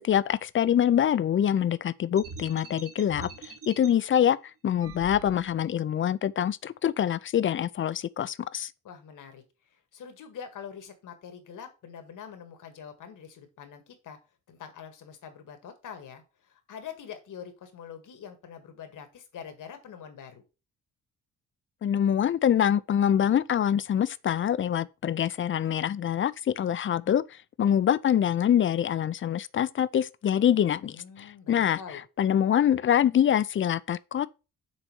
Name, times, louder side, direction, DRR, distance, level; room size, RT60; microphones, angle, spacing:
voice 1, 0.1-4.4 4.6-8.7 21.8-27.2 27.6-31.8 32.2-34.3, left 9 dB, 40° left, 0.4 m, -25 dB
sound 1, 2.2-3.9 4.8-5.7, right 4 dB, 50° right, 1.3 m, -44 dB
voice 2, 8.8-14.2 14.5-20.4 30.9-32.0, left 7 dB, 80° left, 1.7 m, -45 dB
6.3 x 4.1 x 6.0 m
cardioid pair, 120°, 31 cm